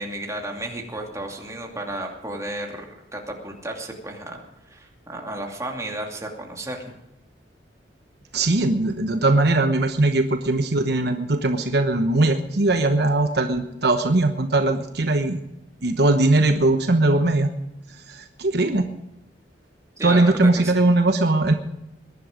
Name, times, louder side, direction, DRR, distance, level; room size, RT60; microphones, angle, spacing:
voice 1, 0.0-4.4 4.7-6.9 20.0-20.8, right 1 dB, 15° right, 1 dB, 2.6 m, -33 dB
voice 2, 8.3-15.4 15.8-17.5 18.1-18.8 20.0-21.5, right 2 dB, 65° right, 7 dB, 1.0 m, -20 dB
21.0 x 11.0 x 5.2 m, 0.91 s
head